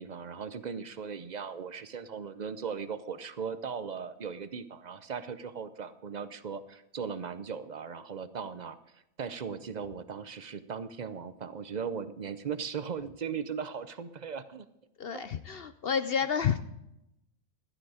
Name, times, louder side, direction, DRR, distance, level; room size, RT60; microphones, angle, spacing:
voice 1, 0.0-14.7 15.1-15.2, right 6 dB, 45° right, 13 dB, 0.6 m, -38 dB
voice 2, 15.0-16.8, left 7 dB, 60° left, 12 dB, 0.7 m, -30 dB
16.0 x 12.0 x 4.9 m, 0.85 s
omnidirectional pair, 1.5 m